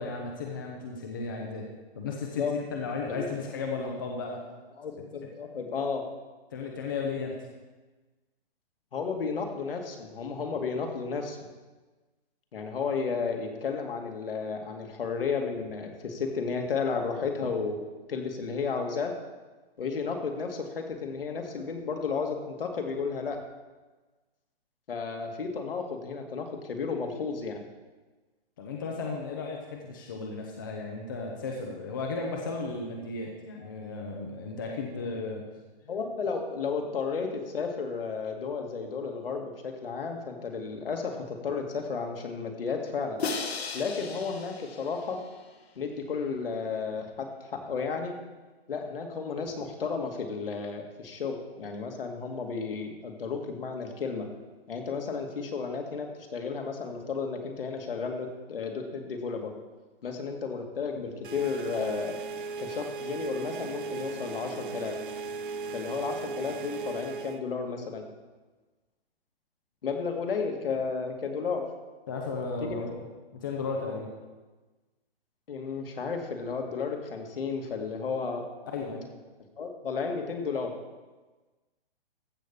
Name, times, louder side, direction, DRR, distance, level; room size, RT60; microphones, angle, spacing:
voice 1, 0.0-1.7 1.9-4.4 6.5-7.3 28.6-35.4 72.1-73.1 73.3-74.1 78.7-79.0, left 4 dB, 20° left, 0 dB, 0.8 m, -34 dB
voice 2, 2.1-2.5 3.1-3.3 4.8-6.0 8.9-11.4 12.5-17.8 18.1-19.1 19.8-23.4 24.9-27.6 35.9-43.2 43.7-45.2 45.8-48.2 48.7-54.3 54.7-59.5 60.0-62.2 62.6-64.9 65.7-68.1 69.8-71.6 72.6-72.9 75.5-78.4 79.6-80.7, left 5 dB, 65° left, 3 dB, 2.2 m, -33 dB
Crash cymbal, 43.2-45.4, left 4 dB, 80° left, 1.8 m, -36 dB
sound 1, 61.2-67.4, right 4 dB, 55° right, 0.8 m, -37 dB
14.5 x 5.2 x 7.0 m, 1.2 s
hypercardioid pair, 180°, 31 cm